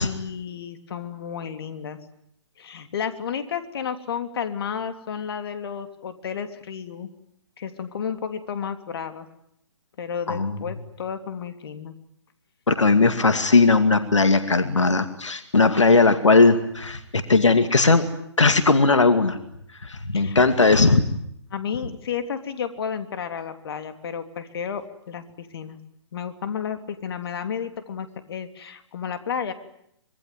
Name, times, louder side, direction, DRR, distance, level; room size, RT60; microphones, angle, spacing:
voice 1, 0.0-2.0 2.6-7.1 7.6-9.3 10.0-11.9 20.1-20.4 21.5-25.8 26.1-29.5, left 7 dB, 55° left, 8 dB, 3.1 m, -32 dB
voice 2, 12.7-18.0 18.4-19.4 19.8-21.0, left 3 dB, 85° left, 9 dB, 2.3 m, -18 dB
25.5 x 23.0 x 9.3 m, 0.76 s
figure-of-eight pair, 135°, 15 cm